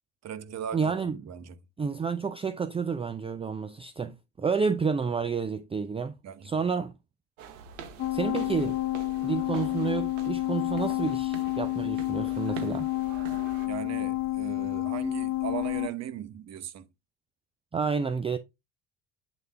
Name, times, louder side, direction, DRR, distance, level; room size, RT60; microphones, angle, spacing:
voice 1, 0.2-0.9 1.3-1.6 6.2-6.6 13.7-16.9, right 9 dB, 45° right, 0.8 m, -38 dB
voice 2, 0.7-1.2 1.8-6.1 6.4-6.9 8.1-8.8 9.2-12.9 17.7-18.4, right 5 dB, 15° right, 0.5 m, -30 dB
sound 1, 7.4-13.7, right 7 dB, 90° right, 1.1 m, -45 dB
sound 2, 8.0-15.9, left 17 dB, 50° left, 0.8 m, -30 dB
8.0 x 3.4 x 3.4 m
supercardioid pair, 85°, 37 cm